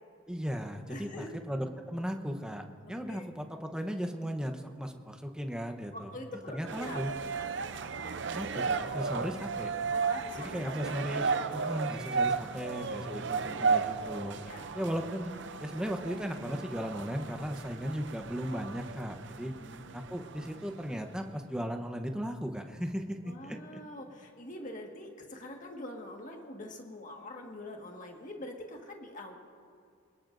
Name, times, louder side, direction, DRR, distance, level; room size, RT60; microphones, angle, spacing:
voice 1, 0.3-6.1 6.5-7.1 8.3-9.7 10.4-14.4 14.7-15.3 15.6-19.5 19.9-23.8, equal, 5° right, 4 dB, 0.9 m, -36 dB
voice 2, 0.9-1.4 2.9-3.3 5.9-7.5 9.9-11.4 12.9-13.4 14.4-14.7 19.4-20.2 23.2-29.4, left 1 dB, 40° left, 1 dB, 1.7 m, -45 dB
sound 1, 6.7-21.0, right 5 dB, 60° right, 0.6 m, -34 dB
24.0 x 21.5 x 2.6 m, 2.4 s
head